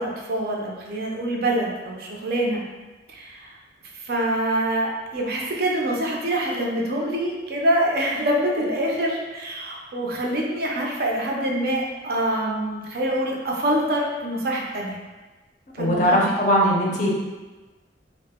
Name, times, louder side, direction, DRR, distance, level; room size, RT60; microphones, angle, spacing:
voice 1, 0.0-2.6 3.1-3.6 3.9-15.0 15.7-16.3, right 1 dB, 55° right, -2 dB, 0.4 m, -25 dB
voice 2, 15.8-17.1, equal, 40° left, -2 dB, 0.4 m, -20 dB
2.0 x 2.0 x 3.4 m, 1.2 s
head